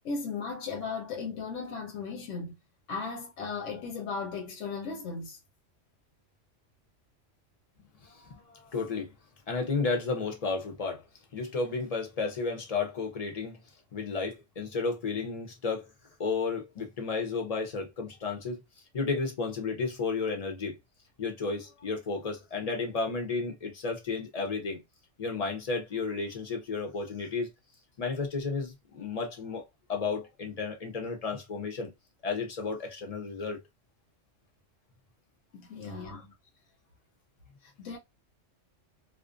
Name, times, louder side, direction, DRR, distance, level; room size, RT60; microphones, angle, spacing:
voice 1, 0.0-2.5 2.9-5.4 35.5-36.3 37.6-38.0, left 4 dB, 90° left, 1.0 m, -36 dB
voice 2, 8.0-9.1 9.5-11.0 11.3-13.6 13.9-15.9 16.2-18.6 18.9-20.8 21.2-24.8 25.2-27.5 28.0-29.6 29.9-31.9 32.2-33.6 36.0-36.2, left 4 dB, 45° left, 0.5 m, -32 dB
2.4 x 2.1 x 2.4 m
omnidirectional pair, 1.3 m